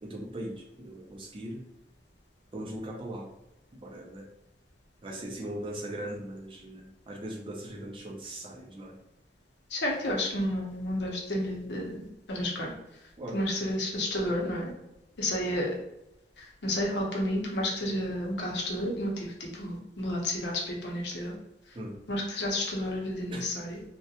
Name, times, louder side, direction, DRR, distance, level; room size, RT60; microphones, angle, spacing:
voice 1, 0.0-1.6 2.5-3.3 3.8-4.3 5.0-9.0 13.2-13.4 21.7-22.0 23.3-23.4, right 1 dB, 30° right, 0 dB, 0.4 m, -39 dB
voice 2, 9.7-13.0 13.3-14.7 15.2-15.8 16.4-21.3 21.7-21.8 22.1-23.8, left 1 dB, 75° left, -1 dB, 0.7 m, -31 dB
2.4 x 2.1 x 2.7 m, 0.89 s
head